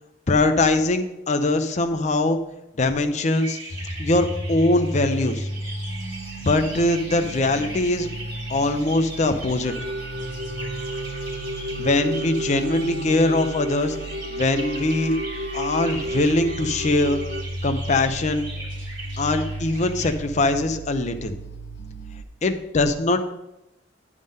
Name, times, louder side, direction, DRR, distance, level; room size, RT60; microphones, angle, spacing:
voice 1, 0.3-2.4 2.8-3.6 4.0-5.5 6.4-8.1 8.5-9.7 11.8-14.0 14.3-15.2 15.5-17.2 17.6-18.5 19.2-21.3 22.4-23.3, left 2 dB, 35° left, 8 dB, 0.5 m, -22 dB
sound 1, 3.3-20.2, right 2 dB, 20° right, 1.5 m, -39 dB
sound 2, 3.7-22.2, right 1 dB, 65° left, 1.0 m, -35 dB
sound 3, 9.6-17.4, right 1 dB, 55° right, 0.6 m, -33 dB
11.0 x 3.7 x 5.3 m, 0.90 s
head